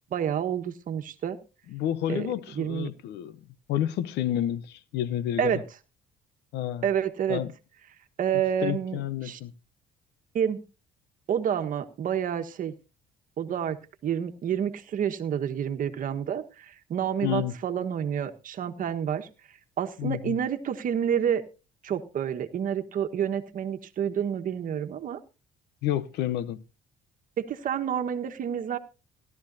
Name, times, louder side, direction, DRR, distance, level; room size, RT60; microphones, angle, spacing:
voice 1, 0.1-1.4 2.1-2.3 2.6-2.9 5.4-5.6 6.8-7.4 8.2-9.4 10.3-10.6 11.3-12.7 13.4-13.8 14.0-19.3 19.8-21.4 21.8-25.2 27.4-28.8, right 9 dB, 55° right, 1.3 m, -29 dB
voice 2, 1.7-5.6 6.5-6.9 7.3-7.5 8.6-9.5 17.2-17.6 20.0-20.4 25.8-26.6, left 12 dB, 80° left, 0.8 m, -30 dB
17.0 x 12.0 x 2.7 m
cardioid pair, 110°, 17 cm